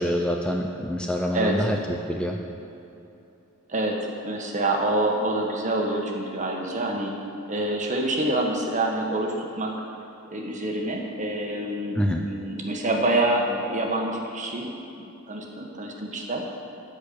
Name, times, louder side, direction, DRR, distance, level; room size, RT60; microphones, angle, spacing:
voice 1, 0.0-2.4 12.0-12.2, equal, 5° left, 2 dB, 0.5 m, -26 dB
voice 2, 1.3-1.7 3.7-7.2 7.5-9.8 10.3-14.7 15.0-16.4, right 1 dB, 35° right, 1 dB, 1.4 m, -27 dB
13.0 x 4.6 x 8.6 m, 2.9 s
head